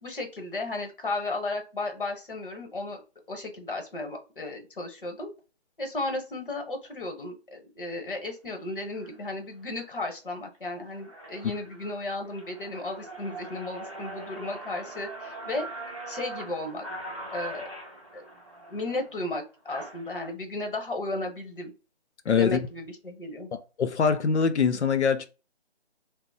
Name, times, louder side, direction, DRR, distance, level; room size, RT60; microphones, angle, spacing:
voice 1, 0.0-3.0 3.3-5.3 5.8-15.7 16.1-16.9 17.3-17.7 18.1-18.2 18.7-21.7 22.4-23.5, left 2 dB, 50° left, 1.0 m, -34 dB
sound 1, 8.1-8.3 8.9-9.2 9.7-10.1 10.5-10.6 10.9-20.3, right 2 dB, 30° right, 0.6 m, -42 dB
voice 2, 22.3-22.6 23.8-25.3, left 6 dB, 85° left, 0.7 m, -23 dB
2.7 x 2.0 x 4.0 m
hypercardioid pair, 180°, 33 cm